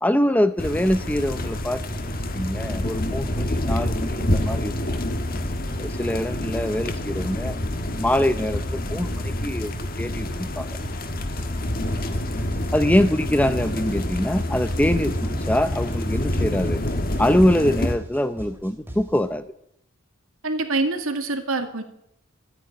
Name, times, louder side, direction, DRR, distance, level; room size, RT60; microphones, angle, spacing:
voice 1, 0.0-4.8 5.8-7.6 8.0-9.7 10.0-10.8 12.7-16.8 17.2-19.5, left 1 dB, 5° left, 12 dB, 0.6 m, -24 dB
sound 1, 0.6-17.9, left 1 dB, 45° left, 1.5 m, -27 dB
sound 2, 11.4-19.4, equal, 10° right, 2.5 m, -41 dB
voice 2, 20.4-21.8, right 3 dB, 85° right, 6 dB, 2.1 m, -25 dB
13.0 x 9.6 x 9.9 m, 0.75 s
head